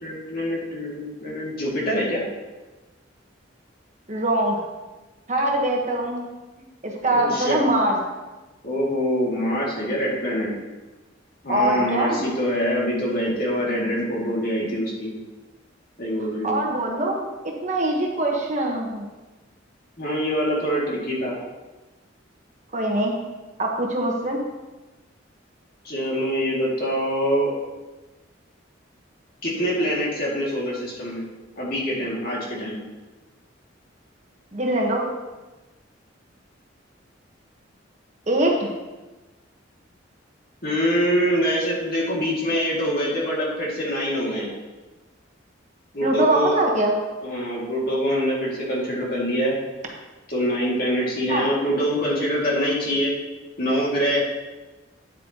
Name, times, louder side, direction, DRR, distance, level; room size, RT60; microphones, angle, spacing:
voice 1, 0.0-2.2 7.1-7.6 8.6-10.5 11.4-15.1 16.0-16.6 20.0-21.4 25.8-27.5 29.4-31.2 31.6-32.8 40.6-44.5 45.9-46.5 47.2-49.6 50.3-53.1 53.6-54.2, equal, 50° left, -4 dB, 2.3 m, -24 dB
voice 2, 4.1-4.6 5.3-6.3 6.8-8.0 11.5-12.2 16.4-19.1 22.7-23.2 23.6-24.4 34.5-35.1 38.3-38.7 46.0-46.9 51.3-51.5, right 1 dB, 40° right, 0 dB, 1.2 m, -23 dB
9.5 x 8.4 x 2.9 m, 1.2 s
head